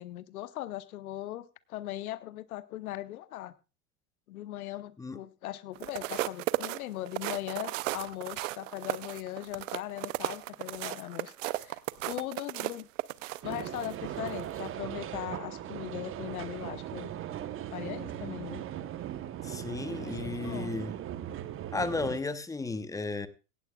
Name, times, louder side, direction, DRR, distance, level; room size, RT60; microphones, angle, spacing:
voice 1, 0.0-3.5 4.3-11.3 11.6-11.8 12.1-12.9 13.4-17.1 17.7-18.6 20.0-20.7, left 14 dB, 65° left, 15 dB, 1.0 m, -39 dB
sound 1, 5.7-13.9 14.4-14.6, right 18 dB, 55° right, 0.7 m, -35 dB
sound 2, 13.4-22.2, right 11 dB, 25° right, 1.0 m, -38 dB
voice 2, 19.4-20.9 21.7-23.3, left 3 dB, 5° left, 14 dB, 0.7 m, -34 dB
17.0 x 15.5 x 2.3 m, 0.31 s
hypercardioid pair, 100°, 46 cm